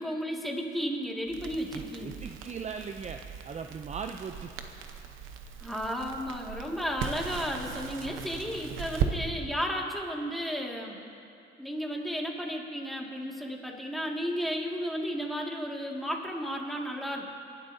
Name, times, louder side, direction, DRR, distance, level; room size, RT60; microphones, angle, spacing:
voice 1, 0.0-2.1 5.6-11.0 11.6-17.3, equal, ahead, -1 dB, 2.0 m, -33 dB
Crackle, 1.3-9.1, right 7 dB, 80° right, 0.9 m, -38 dB
voice 2, 2.0-4.5, right 6 dB, 35° right, 6 dB, 0.5 m, -39 dB
28.0 x 11.5 x 2.7 m, 2.6 s
cardioid pair, 90°, 20 cm